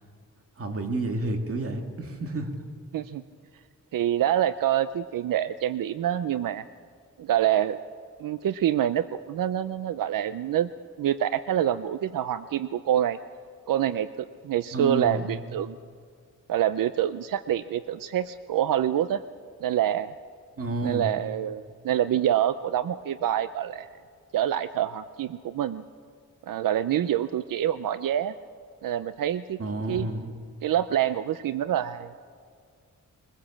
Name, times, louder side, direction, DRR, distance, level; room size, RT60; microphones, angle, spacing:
voice 1, 0.6-2.5 14.7-15.3 20.6-21.1 29.6-30.3, right 2 dB, 45° right, 4 dB, 2.2 m, -30 dB
voice 2, 3.9-6.6 7.2-7.8 8.2-10.7 11.0-13.2 13.7-15.8 16.5-19.2 19.6-20.1 20.8-23.9 24.3-25.8 26.5-28.3 28.8-29.6 29.9-30.1 30.6-32.1, right 11 dB, 85° right, 13 dB, 0.6 m, -26 dB
22.5 x 20.5 x 7.3 m, 2.1 s
wide cardioid pair, 135°, 32 cm